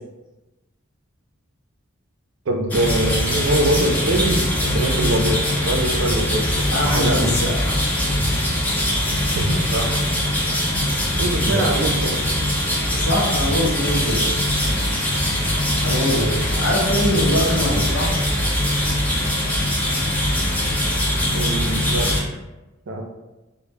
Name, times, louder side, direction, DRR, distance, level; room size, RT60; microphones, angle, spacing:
voice 1, 2.5-6.7 6.9-7.4 9.3-10.0 11.2-12.2 12.5-12.6 21.3-22.1 22.9-23.0, right 1 dB, 65° right, 2 dB, 0.4 m, -23 dB
sound 1, 2.7-22.2, left 1 dB, 10° left, 0.4 m, -22 dB
voice 2, 6.7-7.8 8.2-8.3 9.0-9.2 11.4-11.9 12.9-14.3 15.8-18.1, equal, 80° left, -2 dB, 0.7 m, -23 dB
2.1 x 2.0 x 3.3 m, 1.1 s
head